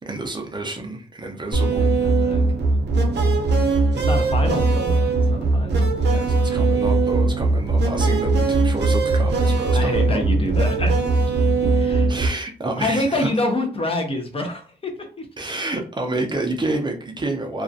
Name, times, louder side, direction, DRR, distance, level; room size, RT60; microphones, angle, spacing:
voice 1, 0.1-1.9 6.1-10.2 12.1-13.3 15.4-17.6, right 2 dB, 25° right, 2 dB, 0.4 m, -29 dB
voice 2, 1.5-2.4 3.9-5.9 9.7-11.0 11.6-12.1 12.8-15.3, left 2 dB, 30° left, 3 dB, 0.5 m, -27 dB
sound 1, 1.5-12.3, right 3 dB, 70° right, 0.5 m, -19 dB
2.3 x 2.1 x 2.5 m, 0.38 s
wide cardioid pair, 130°, 18 cm